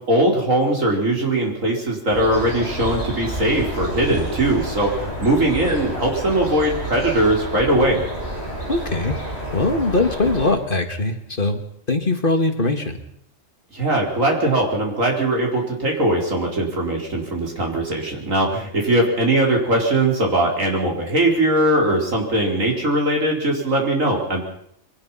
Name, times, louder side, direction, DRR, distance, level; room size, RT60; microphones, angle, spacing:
voice 1, 0.1-8.0 13.7-24.4, right 1 dB, 80° right, 0 dB, 5.0 m, -20 dB
sound 1, 2.1-10.5, right 1 dB, 55° right, 6.7 m, -30 dB
voice 2, 8.7-9.2 9.5-11.6 11.9-13.0, left 2 dB, 40° left, 6 dB, 2.3 m, -21 dB
23.5 x 20.0 x 5.8 m, 0.70 s
omnidirectional pair, 1.3 m